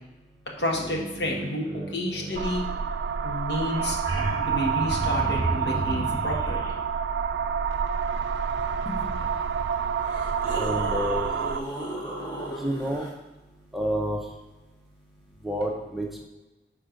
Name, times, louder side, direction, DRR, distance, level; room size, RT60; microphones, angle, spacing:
voice 1, 0.6-2.6 3.2-4.0 4.4-6.6 8.8-9.1, left 1 dB, 75° left, -1 dB, 1.5 m, -30 dB
sound 1, 0.6-3.6, right 2 dB, 20° right, 1.3 m, -40 dB
sound 2, 2.3-11.6, right 6 dB, 70° right, 0.4 m, -28 dB
sound 3, 3.3-3.4 3.6-6.7 9.2-9.3 10.0-13.1 15.6-15.7, right 1 dB, 30° left, 1.5 m, -33 dB
voice 2, 10.6-11.3 12.6-13.1 13.7-14.2 15.4-16.2, equal, ahead, 0 dB, 0.6 m, -29 dB
6.1 x 4.4 x 5.0 m, 1.1 s
head